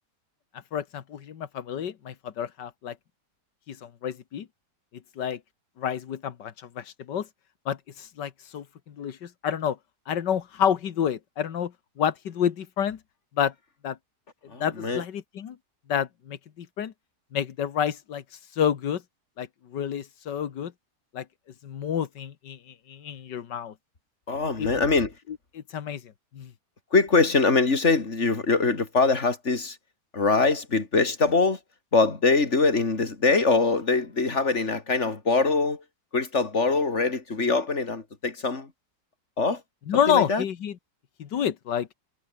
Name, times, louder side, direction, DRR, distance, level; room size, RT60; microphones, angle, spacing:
voice 1, 0.7-3.0 3.7-4.5 5.2-5.4 5.8-7.3 7.7-9.8 10.1-11.7 12.0-13.0 13.4-13.5 13.8-14.0 14.6-15.6 15.9-16.9 17.3-18.2 18.5-19.0 19.4-20.7 21.1-21.3 21.6-23.7 24.6-24.7 25.5-26.0 26.3-26.5 39.9-40.8 41.2-41.9, left 8 dB, 90° left, 2.0 m, -29 dB
voice 2, 14.5-15.0 24.3-25.1 26.9-29.8 30.1-31.6 31.9-35.8 36.1-38.7 39.4-39.6 39.9-40.4, left 3 dB, 40° left, 3.4 m, -23 dB
omnidirectional pair, 1.8 m